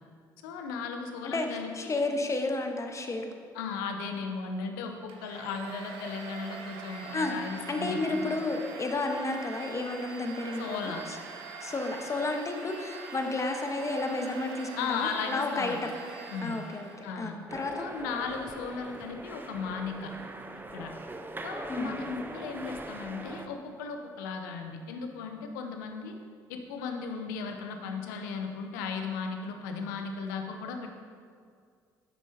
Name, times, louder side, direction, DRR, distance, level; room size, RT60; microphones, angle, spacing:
voice 1, 0.4-2.0 3.5-8.4 10.6-11.0 14.8-15.8 16.3-16.6 17.0-17.4 17.8-20.1 20.7-20.9 21.4-26.2 26.5-30.9, left 5 dB, 75° left, 5 dB, 0.8 m, -36 dB
voice 2, 1.2-3.3 7.1-11.2 11.6-15.9 16.4-17.8 21.7-22.0, left 2 dB, 30° left, 4 dB, 1.1 m, -32 dB
Domestic sounds home sounds, 5.1-17.2, right 4 dB, 65° right, 0.9 m, -43 dB
sound 1, 17.5-23.5, right 2 dB, 20° right, 0.7 m, -41 dB
9.6 x 8.4 x 2.8 m, 2.2 s
hypercardioid pair, 50°, 10 cm